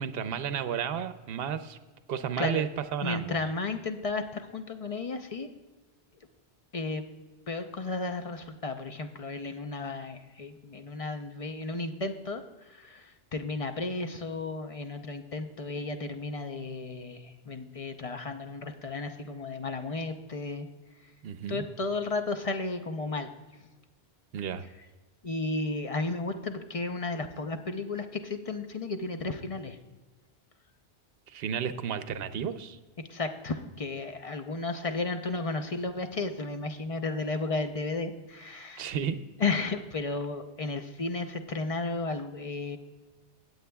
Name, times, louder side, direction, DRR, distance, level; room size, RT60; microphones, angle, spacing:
voice 1, 0.0-1.8 2.1-3.4 21.2-21.6 24.3-24.6 31.3-32.8 38.8-39.2, right 8 dB, 60° right, 11 dB, 0.8 m, -32 dB
voice 2, 3.0-5.5 6.7-7.0 7.5-20.7 21.5-23.3 25.2-29.8 33.1-38.9 39.4-42.8, left 3 dB, 40° left, 7 dB, 0.6 m, -33 dB
18.0 x 8.0 x 2.3 m, 1.2 s
omnidirectional pair, 1.2 m